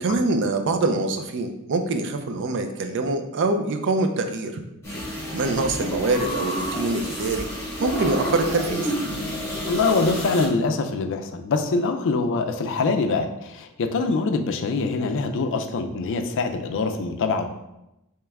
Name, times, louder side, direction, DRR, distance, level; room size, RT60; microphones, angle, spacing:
voice 1, 0.0-4.6 5.3-7.5 7.8-8.9, right 3 dB, 55° right, 6 dB, 0.4 m, -24 dB
sound 1, 4.8-10.5, equal, 15° left, 1.5 m, -29 dB
voice 2, 9.6-17.5, left 3 dB, 60° left, 6 dB, 0.4 m, -24 dB
3.4 x 3.0 x 3.4 m, 0.89 s
head